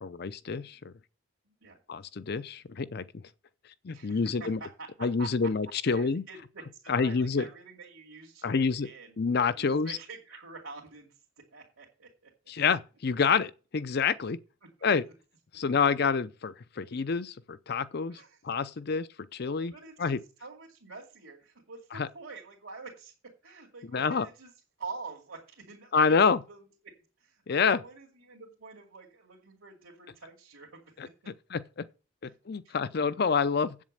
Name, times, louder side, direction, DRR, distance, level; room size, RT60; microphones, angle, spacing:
voice 1, 0.0-0.9 1.9-3.0 3.8-4.6 5.0-6.2 6.9-7.5 8.4-8.9 9.2-9.9 12.5-14.4 14.8-15.0 15.5-18.1 18.5-19.7 20.0-20.2 21.9-22.1 23.9-24.3 25.9-26.4 27.5-27.8 31.5-31.6 32.5-33.7, left 5 dB, 50° left, 0.5 m, -27 dB
voice 2, 1.4-1.8 3.9-5.5 5.8-9.2 9.6-12.3 14.8-15.1 18.1-18.4 19.7-24.5 24.8-31.3 32.3-32.4 32.6-32.8, right 4 dB, 90° right, 2.5 m, -47 dB
8.3 x 7.3 x 6.5 m
head